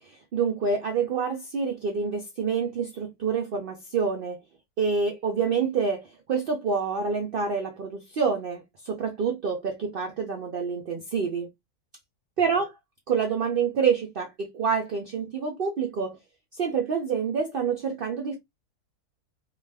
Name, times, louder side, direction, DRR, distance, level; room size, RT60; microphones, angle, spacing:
voice 1, 0.0-4.4 4.8-11.5 12.4-12.7 13.1-16.2 16.5-18.4, right 5 dB, 75° right, 0.5 m, -27 dB
2.5 x 2.3 x 3.3 m
omnidirectional pair, 1.6 m